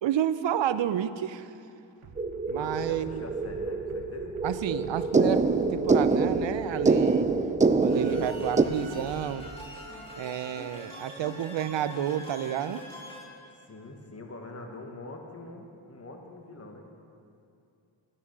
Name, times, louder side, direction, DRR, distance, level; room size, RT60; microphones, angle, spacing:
voice 1, 0.0-1.5 2.5-3.2 4.4-7.3 7.8-9.5 10.2-12.9, right 10 dB, 65° right, 14 dB, 0.6 m, -30 dB
sound 1, 2.0-9.5, right 3 dB, 80° right, 1.2 m, -47 dB
sound 2, 2.2-8.6, right 4 dB, 15° right, 0.4 m, -25 dB
voice 2, 2.6-4.3 13.7-16.9, left 2 dB, 30° left, 2 dB, 1.5 m, -44 dB
sound 3, 7.9-13.2, equal, 10° left, 2.5 m, -43 dB
12.5 x 9.8 x 6.1 m, 2.6 s
cardioid pair, 75°, 49 cm